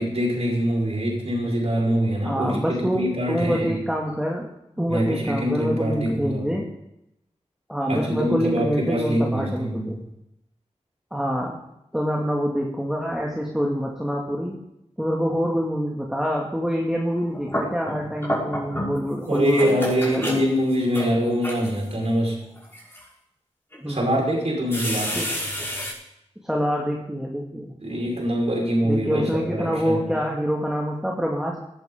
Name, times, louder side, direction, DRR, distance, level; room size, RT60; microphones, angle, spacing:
voice 1, 0.0-3.8 4.8-6.5 7.9-10.0 19.3-22.4 23.8-25.2 27.8-30.2, equal, 60° right, -1 dB, 5.3 m, -24 dB
voice 2, 2.2-4.5 4.8-6.6 7.7-10.0 11.1-11.6 11.9-14.6 15.0-20.4 23.7-24.2 25.2-25.3 26.4-27.8 28.8-31.6, equal, 5° right, -2 dB, 2.5 m, -26 dB
sound 1, 17.1-19.1 19.3-21.9 22.6-23.0 23.7-23.8 24.7-25.9, equal, 20° left, 6.4 m, -30 dB
18.5 x 11.5 x 3.9 m, 0.84 s
cardioid pair, 50°, 12 cm